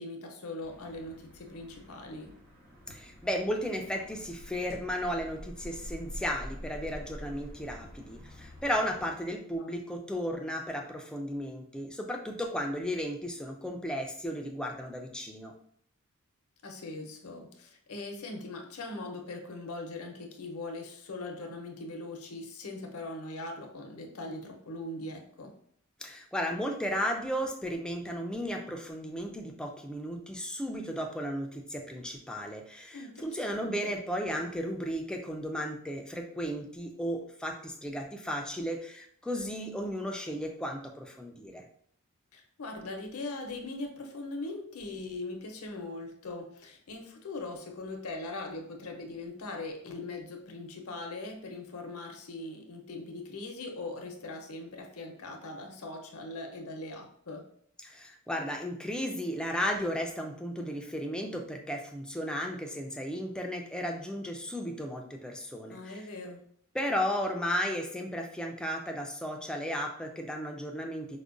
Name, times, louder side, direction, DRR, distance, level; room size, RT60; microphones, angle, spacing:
voice 1, 0.0-2.3 9.6-9.7 16.6-25.5 32.9-33.9 42.3-57.5 65.7-66.4, left 2 dB, 75° left, 3 dB, 0.7 m, -41 dB
sound 1, 0.6-9.1, equal, 40° right, 1.1 m, -47 dB
voice 2, 2.9-15.5 26.0-41.6 57.8-66.0 66.7-71.2, equal, 5° left, 2 dB, 0.3 m, -34 dB
4.7 x 2.1 x 2.5 m, 0.63 s
head